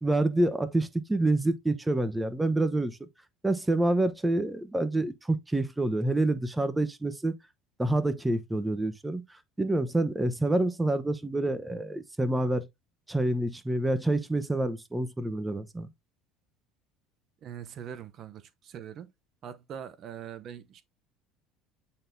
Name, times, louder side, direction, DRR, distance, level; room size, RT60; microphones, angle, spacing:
voice 1, 0.0-3.0 3.4-7.3 7.8-12.7 13.1-15.9, right 2 dB, 10° right, 0.9 m, -27 dB
voice 2, 17.4-19.1 19.4-20.8, right 8 dB, 50° right, 0.8 m, -42 dB
8.7 x 4.1 x 2.7 m
supercardioid pair, 85°, 0 cm